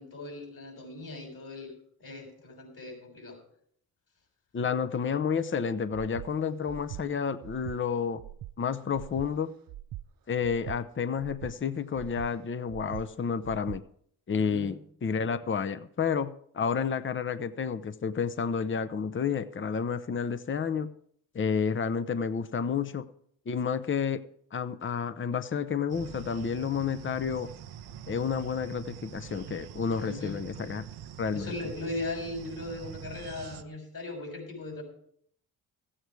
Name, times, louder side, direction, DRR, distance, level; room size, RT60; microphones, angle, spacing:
voice 1, 0.0-1.7 2.0-3.4 14.4-14.7 30.0-30.4 31.3-34.8, left 2 dB, 60° left, 0 dB, 6.6 m, -38 dB
voice 2, 4.5-8.2 8.6-9.5 10.3-13.8 14.3-20.9 21.3-23.1 23.5-24.2 24.5-27.5 28.1-30.8 31.2-31.5, left 6 dB, 30° left, 11 dB, 0.8 m, -30 dB
Breathing, 5.9-6.3 6.7-7.0 7.4-7.8 8.2-8.5 8.9-9.3 9.7-10.0 10.4-10.8 11.2-11.5 11.9-12.3 12.7-13.0 13.4-13.8, right 14 dB, 65° right, 0.5 m, -42 dB
sound 1, 25.9-33.6, right 10 dB, 85° right, 0.8 m, -44 dB
14.5 x 8.9 x 4.7 m, 0.64 s
cardioid pair, 70°, 38 cm